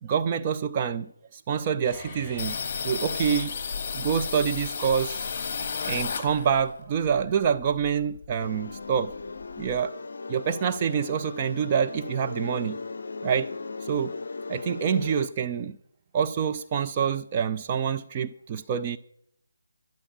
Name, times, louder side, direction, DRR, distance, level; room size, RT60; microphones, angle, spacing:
voice 1, 0.0-2.6 2.8-3.6 3.9-5.2 5.9-9.1 9.6-10.0 10.3-12.8 13.2-13.5 13.8-14.1 14.5-15.8 16.1-19.0, right 7 dB, 20° right, 0.5 m, -26 dB
sound 1, 1.9-4.7, left 3 dB, 5° left, 5.5 m, -47 dB
sound 2, 2.4-6.7 7.1-8.4 8.7-8.8 9.1-9.8, left 6 dB, 30° left, 1.6 m, -33 dB
sound 3, 8.4-15.3, left 3 dB, 50° left, 0.7 m, -37 dB
12.0 x 11.5 x 7.2 m
figure-of-eight pair, 150°, 0 cm